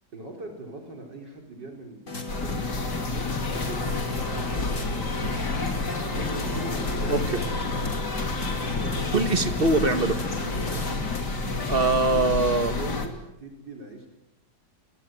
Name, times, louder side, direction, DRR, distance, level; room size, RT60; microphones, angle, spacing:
voice 1, 0.1-7.5 8.7-9.1 10.4-10.8 11.7-14.1, right 2 dB, 75° right, 2 dB, 4.8 m, -41 dB
sound 1, 2.1-11.3, left 2 dB, 45° left, 3.7 m, -37 dB
sound 2, 2.3-13.1, left 3 dB, 65° left, 3.6 m, -29 dB
sound 3, 4.6-11.2, right 1 dB, 50° right, 7.0 m, -44 dB
voice 2, 7.1-7.4 9.1-10.2 11.7-12.8, right 3 dB, 30° right, 9 dB, 1.9 m, -23 dB
29.5 x 21.5 x 9.0 m, 0.86 s
omnidirectional pair, 1.9 m